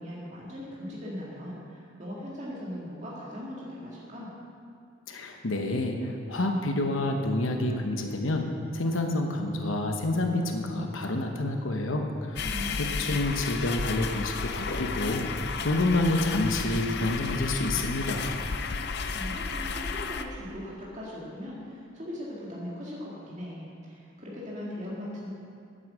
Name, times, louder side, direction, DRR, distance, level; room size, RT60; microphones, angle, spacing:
voice 1, 0.0-4.3 12.4-13.2 19.1-25.3, left 1 dB, 35° right, -6 dB, 2.0 m, -39 dB
voice 2, 5.1-8.5 8.7-12.5 12.7-18.4, left 2 dB, 80° left, 3 dB, 1.0 m, -28 dB
sound 1, 12.4-20.2, left 4 dB, 55° left, 0.5 m, -32 dB
9.7 x 7.9 x 7.7 m, 2.3 s
head